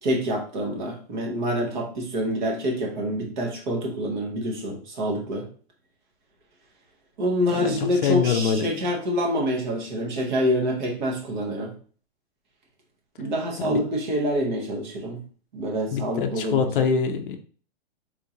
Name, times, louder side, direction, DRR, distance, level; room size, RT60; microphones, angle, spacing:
voice 1, 0.0-5.5 7.2-11.7 13.2-15.2 15.5-16.9, equal, 45° right, 0 dB, 1.0 m, -26 dB
voice 2, 7.5-8.7 13.6-13.8 15.9-17.4, left 6 dB, 55° left, 7 dB, 0.4 m, -24 dB
3.6 x 2.5 x 2.8 m, 0.42 s
hypercardioid pair, 175°, 32 cm